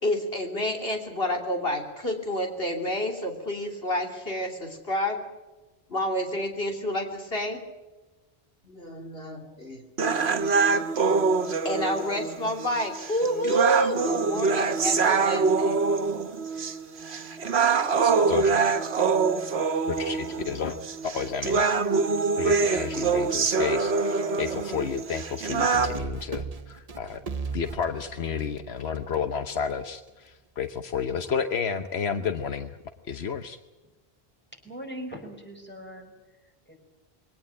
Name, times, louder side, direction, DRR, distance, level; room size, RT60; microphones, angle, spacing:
voice 1, 0.0-5.2 5.9-7.6 8.6-9.8 11.6-15.8, equal, 65° left, 2 dB, 3.3 m, -29 dB
sound 1, 10.0-26.0, right 4 dB, 85° right, 1.5 m, -25 dB
voice 2, 18.0-18.5 19.9-20.8 21.0-21.6 22.4-27.2 27.5-32.8 33.1-33.6, left 6 dB, 80° left, 9 dB, 1.3 m, -31 dB
sound 2, 25.8-29.2, right 4 dB, 40° right, 1.1 m, -36 dB
voice 3, 34.6-36.8, equal, 10° left, 2 dB, 5.4 m, -41 dB
22.5 x 18.0 x 9.0 m, 1.1 s
omnidirectional pair, 1.1 m